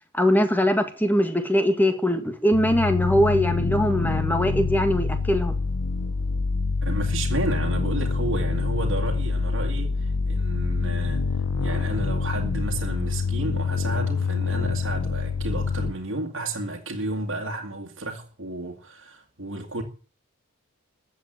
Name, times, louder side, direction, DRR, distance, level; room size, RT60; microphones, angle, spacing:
voice 1, 0.1-5.6, equal, 10° left, 1.8 m, -22 dB
sound 1, 2.5-15.9, left 4 dB, 90° left, 0.9 m, -26 dB
voice 2, 6.8-11.3 11.6-19.8, right 2 dB, 60° right, 2.2 m, -32 dB
14.5 x 7.9 x 9.1 m
head